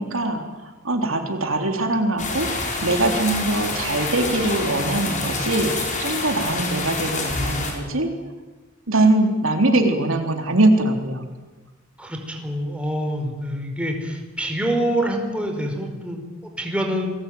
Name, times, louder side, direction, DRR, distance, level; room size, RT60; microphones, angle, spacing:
voice 1, 0.0-2.5 2.8-8.1 8.9-11.2, right 2 dB, 80° right, 5 dB, 3.7 m, -22 dB
sound 1, 2.2-7.7, left 3 dB, 40° left, 6.8 m, -27 dB
voice 2, 12.0-17.1, equal, 5° right, 2 dB, 5.0 m, -26 dB
29.5 x 21.0 x 9.4 m, 1.2 s
head